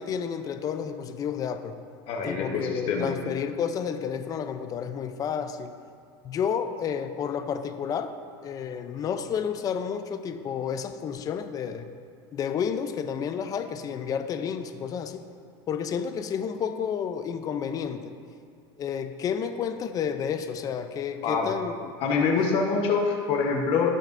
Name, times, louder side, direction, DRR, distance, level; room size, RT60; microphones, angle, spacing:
voice 1, 0.0-1.8 2.2-5.7 6.2-8.2 8.4-11.9 12.3-15.2 15.7-18.1 18.8-21.9 22.4-22.5, left 7 dB, 30° left, 9 dB, 0.5 m, -31 dB
voice 2, 2.1-3.1 21.2-21.5 22.0-24.0, left 5 dB, 45° left, 1 dB, 1.1 m, -25 dB
17.0 x 6.4 x 2.6 m, 2.2 s
supercardioid pair, 135°, 13 cm